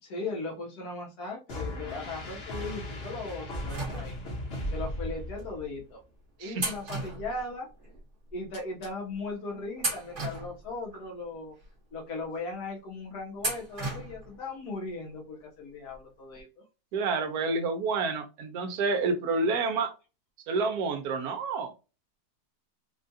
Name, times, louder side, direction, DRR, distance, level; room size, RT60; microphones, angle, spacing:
voice 1, 0.0-4.2 4.7-6.0 6.4-7.7 8.3-11.6 11.9-16.6, left 3 dB, 75° left, 1.4 m, -38 dB
sound 1, 1.5-5.8, left 1 dB, 45° left, 1.1 m, -37 dB
sound 2, 3.7-4.5 5.4-5.5 6.6-8.0 8.3-8.4 9.1-9.3 9.8-11.1 11.6-11.7 13.4-14.4 14.7-14.8 15.9-16.0 16.3-16.4, right 2 dB, 35° right, 1.2 m, -36 dB
voice 2, 6.4-6.7 16.9-19.9 20.5-21.7, right 4 dB, 70° right, 1.2 m, -29 dB
3.5 x 2.4 x 2.7 m
omnidirectional pair, 1.7 m